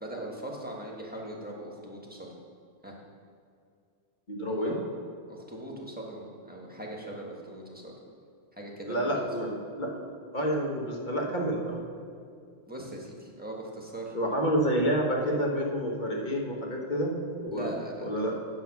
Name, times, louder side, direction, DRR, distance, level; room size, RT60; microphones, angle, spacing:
voice 1, 0.0-2.3 2.8-2.9 4.5-4.8 5.3-7.9 8.5-9.3 12.7-14.1 17.5-18.1, right 1 dB, 5° right, -2 dB, 1.3 m, -40 dB
voice 2, 4.3-4.8 8.9-9.9 10.3-11.8 14.1-17.7 18.0-18.3, equal, 35° left, -1 dB, 1.4 m, -29 dB
8.8 x 7.1 x 5.9 m, 2.3 s
omnidirectional pair, 1.4 m